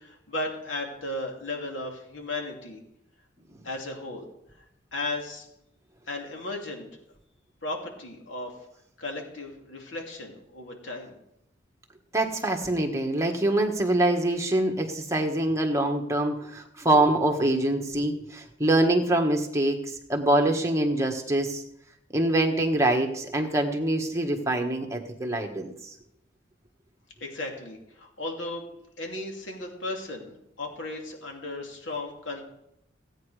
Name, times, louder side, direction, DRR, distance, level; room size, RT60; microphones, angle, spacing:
voice 1, 0.0-2.8 3.6-4.2 4.9-5.5 6.1-7.0 7.6-8.5 9.0-11.1 27.2-28.7 29.0-32.4, left 2 dB, 85° left, 1 dB, 2.8 m, -35 dB
voice 2, 12.1-19.8 20.1-21.6 22.1-25.7, right 1 dB, 15° right, 3 dB, 1.5 m, -24 dB
17.0 x 9.1 x 4.9 m, 0.80 s
head